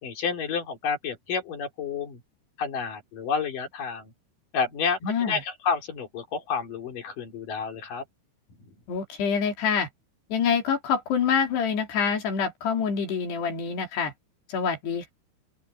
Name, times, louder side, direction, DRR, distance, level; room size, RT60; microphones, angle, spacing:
voice 1, 0.0-2.2 2.6-4.1 4.5-5.0 5.3-8.1, left 5 dB, 55° left, 5.3 m, -30 dB
voice 2, 5.0-5.4 8.9-9.9 10.3-14.1 14.5-15.1, left 6 dB, 85° left, 5.6 m, -26 dB
open air
omnidirectional pair, 4.7 m